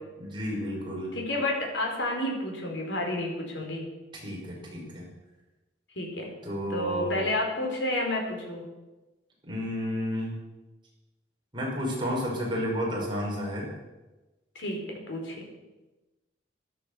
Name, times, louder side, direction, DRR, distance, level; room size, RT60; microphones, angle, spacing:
voice 1, 0.2-1.1 4.2-5.1 6.4-7.2 9.5-10.4 11.5-13.7, equal, 25° right, -4 dB, 5.5 m, -31 dB
voice 2, 1.1-3.9 6.0-6.3 6.7-8.6 14.5-15.4, left 1 dB, 80° left, 1 dB, 4.4 m, -30 dB
13.5 x 12.5 x 6.8 m, 1.1 s
head